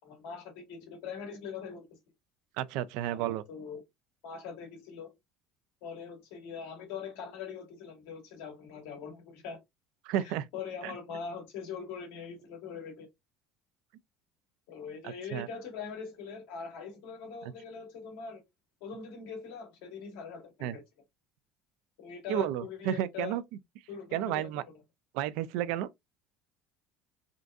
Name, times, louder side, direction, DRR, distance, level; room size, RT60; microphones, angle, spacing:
voice 1, 0.0-1.8 3.1-3.8 4.2-5.1 5.8-9.6 10.2-13.1 14.7-18.4 18.8-20.8 22.0-23.4 23.9-24.5, left 6 dB, 85° left, 1.9 m, -42 dB
voice 2, 2.6-3.4 10.0-10.5 10.8-10.9 15.0-15.5 17.4-17.5 20.6-20.8 22.3-23.4 24.1-24.6 25.1-25.9, right 12 dB, 80° right, 0.4 m, -32 dB
3.8 x 3.5 x 2.5 m
cardioid pair, 115°, 0 cm